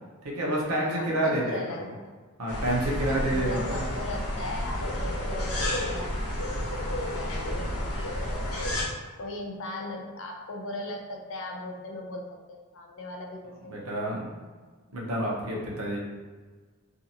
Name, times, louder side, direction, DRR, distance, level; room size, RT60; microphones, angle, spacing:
voice 1, 0.2-1.9 2.4-3.9 13.7-14.2 14.9-16.0, right 1 dB, 75° right, -3 dB, 0.8 m, -29 dB
voice 2, 1.0-2.1 3.1-6.1 6.7-8.1 9.2-14.1, left 2 dB, 60° left, 1 dB, 0.5 m, -38 dB
sound 1, 2.5-8.8, left 1 dB, 90° left, 0.8 m, -31 dB
2.6 x 2.5 x 2.8 m, 1.4 s
head